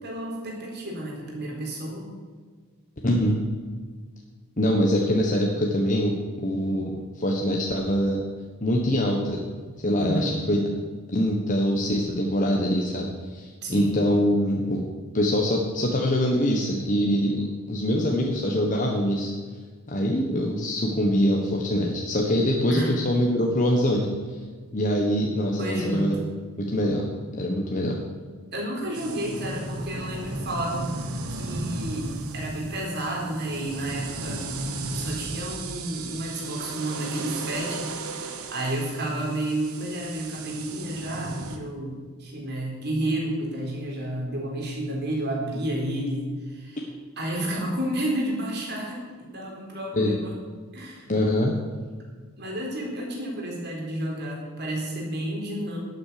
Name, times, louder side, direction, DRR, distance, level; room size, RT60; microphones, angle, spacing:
voice 1, 0.0-2.1 10.0-10.4 13.6-13.9 22.7-23.0 25.6-26.3 28.5-31.0 31.3-32.1 32.3-34.5 34.9-37.9 38.1-46.9 47.2-50.3 50.7-51.1 52.4-55.8, right 1 dB, 50° right, -1 dB, 4.0 m, -31 dB
voice 2, 3.0-3.4 4.6-8.2 8.6-9.4 9.8-10.6 11.1-14.8 15.1-19.3 19.9-24.1 24.7-26.1 26.6-28.0 49.9-50.1 51.1-51.5, equal, 35° left, 0 dB, 1.3 m, -24 dB
sound 1, 28.9-41.6, right 2 dB, 90° right, 1.4 m, -35 dB
11.5 x 8.9 x 6.8 m, 1.5 s
head